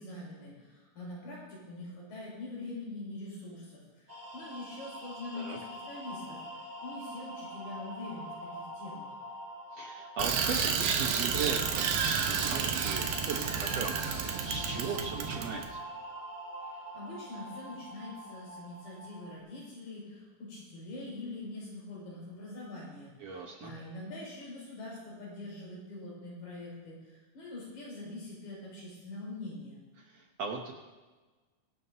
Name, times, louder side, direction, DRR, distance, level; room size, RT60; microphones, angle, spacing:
voice 1, 0.0-6.4 6.8-9.1 16.9-29.8, left 2 dB, 80° left, -5 dB, 7.2 m, -44 dB
sound 1, 4.1-19.4, right 1 dB, 20° right, 4.5 m, -45 dB
voice 2, 9.7-15.8 23.2-23.7 30.0-30.7, right 4 dB, 65° right, 1 dB, 1.8 m, -38 dB
Bicycle, 10.2-15.7, right 6 dB, 85° right, 2.8 m, -31 dB
24.5 x 11.0 x 2.8 m, 1.3 s
omnidirectional pair, 3.9 m